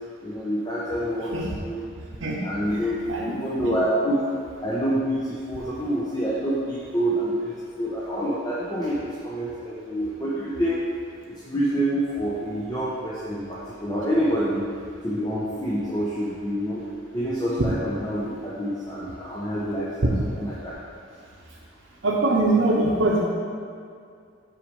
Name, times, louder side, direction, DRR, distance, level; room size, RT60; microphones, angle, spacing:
voice 1, 0.2-1.9 2.4-3.0 3.2-4.2 4.6-10.8 11.3-14.7 15.0-16.8 17.1-20.1 20.4-20.7, equal, 20° left, -8 dB, 0.9 m, -27 dB
voice 2, 2.7-3.4 3.6-3.7 17.6-17.7 20.0-20.3 22.0-23.3, right 2 dB, 75° right, -2 dB, 0.8 m, -23 dB
6.0 x 4.9 x 5.4 m, 2.3 s
head